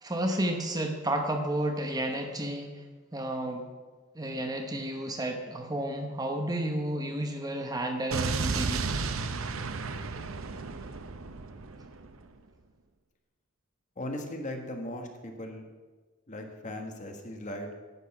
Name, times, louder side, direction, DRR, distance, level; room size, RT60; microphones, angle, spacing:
voice 1, 0.0-2.8 3.1-3.7 4.1-8.8, right 1 dB, 20° right, 4 dB, 1.0 m, -31 dB
Explosion, 8.1-12.2, right 4 dB, 80° right, 0.7 m, -33 dB
voice 2, 14.0-15.6 16.3-17.7, left 1 dB, 35° left, 4 dB, 1.4 m, -38 dB
11.0 x 8.1 x 5.9 m, 1.4 s
head